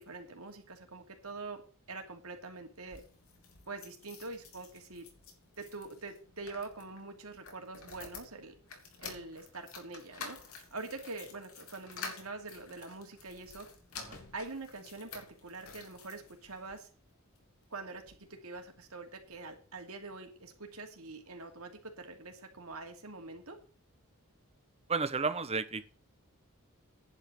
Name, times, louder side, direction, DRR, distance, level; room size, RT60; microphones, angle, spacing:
voice 1, 0.0-1.6 1.9-3.0 3.7-5.1 5.6-8.5 9.0-13.7 14.3-16.9 17.7-23.6, right 3 dB, 90° right, 4 dB, 2.8 m, -45 dB
sound 1, 2.7-16.8 17.4-18.2 18.5-18.6 18.8-18.9, left 5 dB, 85° left, 3.0 m, -50 dB
voice 2, 24.9-25.8, right 4 dB, 30° right, 13 dB, 0.9 m, -32 dB
10.5 x 5.6 x 8.4 m, 0.38 s
head